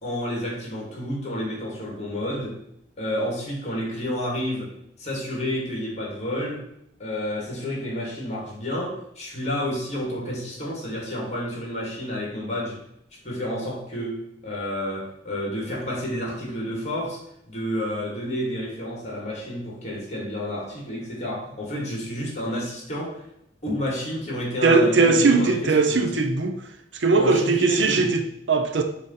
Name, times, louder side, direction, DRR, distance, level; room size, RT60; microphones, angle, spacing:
voice 1, 0.0-2.6 3.0-6.7 7.0-12.8 13.2-17.2 17.5-23.2 23.6-26.1 27.1-28.1, equal, 40° left, 2.2 m, -30 dB
voice 2, 24.6-26.6 26.9-28.8, right 3 dB, 70° right, 0.7 m, -20 dB
6.6 x 2.9 x 5.7 m
head